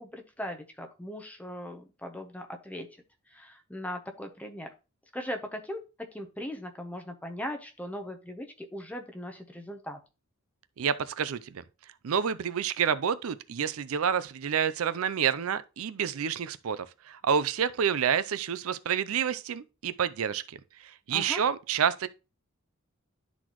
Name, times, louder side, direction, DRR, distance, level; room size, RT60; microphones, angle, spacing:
voice 1, 0.0-2.9 3.3-4.7 5.1-10.0 21.1-21.4, equal, 5° left, 0.7 m, -39 dB
voice 2, 10.8-11.6 12.0-20.6 20.8-22.1, right 7 dB, 90° right, 0.5 m, -28 dB
12.0 x 4.1 x 3.0 m
head